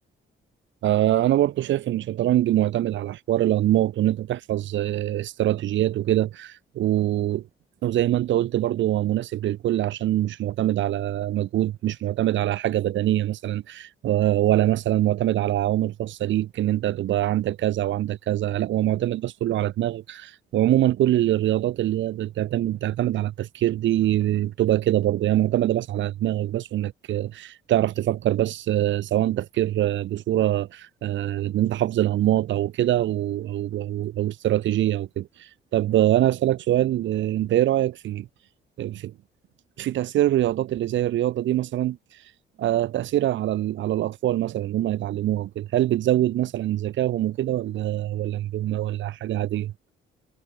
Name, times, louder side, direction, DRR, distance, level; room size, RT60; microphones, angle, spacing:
voice 1, 0.8-7.5 7.8-38.3 38.8-39.1 39.8-42.0 42.6-49.7, right 13 dB, 70° right, 0.9 m, -24 dB
cardioid pair, 90°, 20 cm